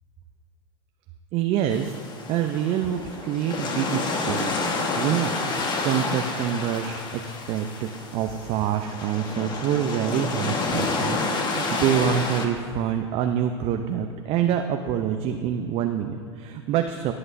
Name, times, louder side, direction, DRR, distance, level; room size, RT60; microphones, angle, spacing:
voice 1, 1.3-2.0 2.3-4.7 4.9-17.1, right 9 dB, 40° right, 5 dB, 0.6 m, -26 dB
water baltic sea waves heavy frequent close perspective mono, 1.7-12.5, left 3 dB, 30° left, 1.4 m, -29 dB
20.0 x 7.9 x 2.7 m, 2.4 s
hypercardioid pair, 105°, 15 cm